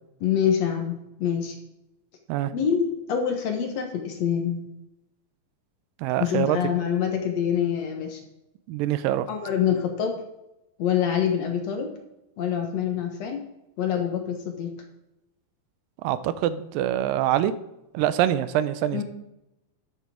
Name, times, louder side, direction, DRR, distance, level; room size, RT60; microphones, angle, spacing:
voice 1, 0.2-1.6 2.5-4.6 6.2-8.2 9.3-10.2 10.8-11.9 12.4-13.4 13.8-14.7 18.9-19.0, left 8 dB, 60° left, 4 dB, 2.1 m, -25 dB
voice 2, 6.0-6.6 8.7-9.3 16.0-17.5 17.9-19.0, right 12 dB, 85° right, 14 dB, 2.3 m, -24 dB
11.5 x 6.6 x 4.9 m, 0.89 s
omnidirectional pair, 3.9 m